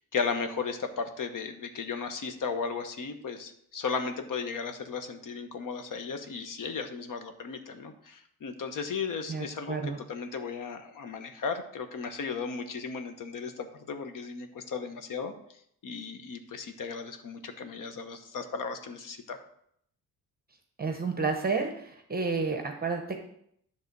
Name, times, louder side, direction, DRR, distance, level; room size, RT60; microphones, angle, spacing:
voice 1, 0.1-9.8 10.1-15.3 15.8-19.4, left 5 dB, 60° left, 7 dB, 1.0 m, -35 dB
voice 2, 9.3-10.0 20.8-23.2, right 4 dB, 25° right, 4 dB, 0.9 m, -31 dB
10.5 x 3.5 x 6.7 m, 0.70 s
wide cardioid pair, 170°, 36 cm